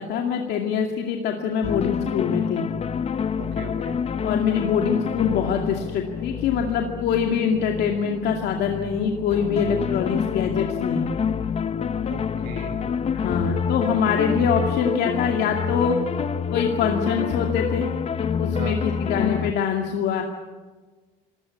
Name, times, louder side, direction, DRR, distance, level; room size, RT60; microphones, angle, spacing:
voice 1, 0.0-2.6 4.2-11.1 13.1-16.0 16.5-17.9 18.2-20.2, left 6 dB, 75° left, 2 dB, 2.3 m, -24 dB
sound 1, 1.6-19.5, left 7 dB, 40° left, 1.0 m, -27 dB
voice 2, 3.4-4.0 12.1-12.9 18.5-18.8, right 4 dB, 90° right, 6 dB, 5.6 m, -37 dB
26.5 x 17.0 x 8.5 m, 1.4 s
cardioid pair, 110°, 17 cm